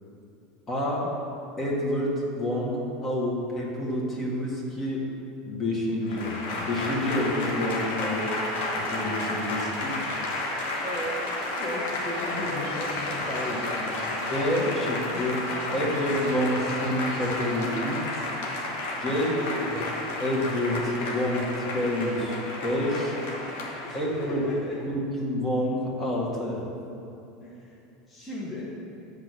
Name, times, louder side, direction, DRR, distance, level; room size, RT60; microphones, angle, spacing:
voice 1, 0.7-1.1 1.6-5.1 5.4-8.4 8.7-10.0 14.3-15.3 15.7-18.3 19.0-19.3 20.2-23.2 23.9-24.4 24.8-26.6, left 1 dB, 30° left, -4 dB, 1.8 m, -28 dB
Applause / Crowd, 6.0-24.6, left 2 dB, 65° left, 1.2 m, -32 dB
voice 2, 10.8-14.0 15.1-15.5 19.4-19.8 23.2-23.4 23.8-24.8 27.4-27.8 28.1-28.8, left 1 dB, 15° left, -8 dB, 1.5 m, -36 dB
7.8 x 3.8 x 6.3 m, 2.7 s
figure-of-eight pair, 80°, 0 cm